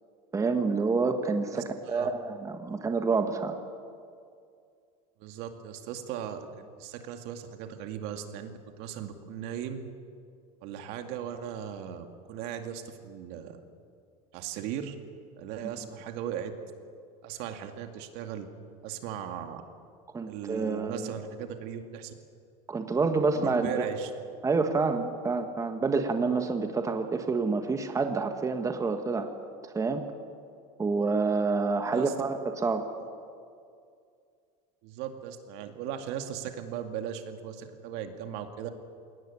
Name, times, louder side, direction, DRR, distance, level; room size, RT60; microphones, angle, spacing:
voice 1, 0.3-3.6 15.6-15.7 20.1-21.1 22.7-23.9 24.4-29.3 29.6-30.0 30.8-32.9, right 4 dB, 15° right, 6 dB, 1.6 m, -28 dB
voice 2, 1.5-2.1 5.2-9.8 10.6-13.6 14.3-15.0 15.4-16.5 17.2-18.5 18.8-19.6 20.3-22.1 23.3-24.1 31.8-32.1 34.8-38.7, right 9 dB, 65° right, 6 dB, 2.3 m, -38 dB
21.0 x 18.5 x 9.8 m, 2.3 s
supercardioid pair, 115°, 19 cm